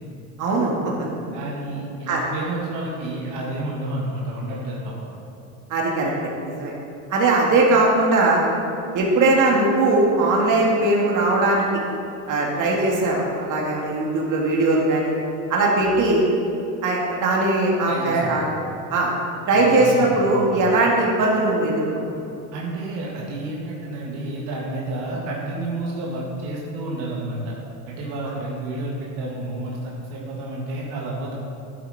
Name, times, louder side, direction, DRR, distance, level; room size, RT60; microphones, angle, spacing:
voice 1, 0.4-1.1 2.1-2.2 5.7-6.1 6.4-6.7 7.1-8.4 8.9-11.7 12.3-15.1 15.5-16.2 16.8-18.4 18.9-19.1 19.5-22.1, right 2 dB, 45° right, -2 dB, 2.3 m, -20 dB
voice 2, 1.3-5.1 17.9-18.4 19.5-20.5 22.5-27.5 27.9-31.3, right 2 dB, 65° right, -4 dB, 2.1 m, -30 dB
11.5 x 8.4 x 4.3 m, 2.7 s
supercardioid pair, 105°, 43 cm